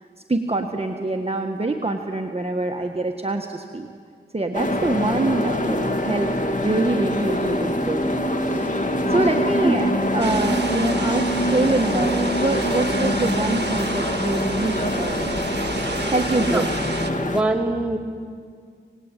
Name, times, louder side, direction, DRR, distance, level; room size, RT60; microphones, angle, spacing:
voice 1, 0.3-3.9 4.3-6.3 6.6-8.0 8.5-8.7 9.1-15.6 16.1-16.7, right 2 dB, 30° right, 2 dB, 1.4 m, -25 dB
sound 1, 4.5-17.4, left 1 dB, 40° left, 2.2 m, -24 dB
sound 2, 10.2-17.1, right 4 dB, 65° right, 1.5 m, -32 dB
voice 2, 17.1-18.0, right 2 dB, 5° right, 0 dB, 3.0 m, -23 dB
26.0 x 19.5 x 9.0 m, 2.1 s
wide cardioid pair, 70°, 19 cm